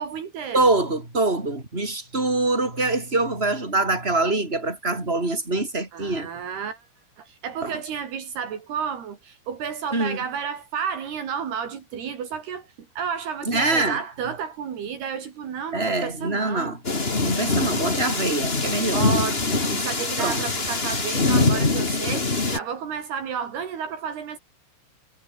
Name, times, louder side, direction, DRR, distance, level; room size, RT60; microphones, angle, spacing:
voice 1, 0.0-0.7 5.9-6.9 7.2-12.7 13.0-16.7 18.9-24.4, right 7 dB, 70° right, 4.9 m, -31 dB
voice 2, 0.5-6.3 7.6-7.8 9.9-10.2 13.5-14.0 15.7-16.8 17.2-19.1 20.2-20.4, right 2 dB, 15° right, 6.8 m, -24 dB
sound 1, 16.8-22.6, left 3 dB, 20° left, 1.8 m, -23 dB
omnidirectional pair, 4.8 m